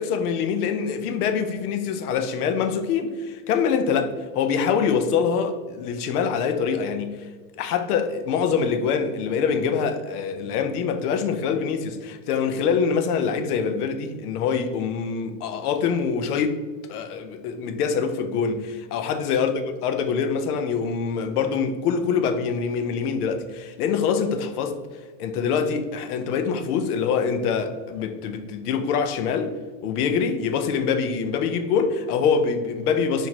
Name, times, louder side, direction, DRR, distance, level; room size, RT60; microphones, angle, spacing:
voice 1, 0.0-7.1 7.6-16.6 16.9-19.5 19.8-24.7 25.2-29.5 29.8-33.3, left 6 dB, 80° left, 7 dB, 0.6 m, -24 dB
4.3 x 2.7 x 2.8 m, 1.5 s
supercardioid pair, 150°, 45 cm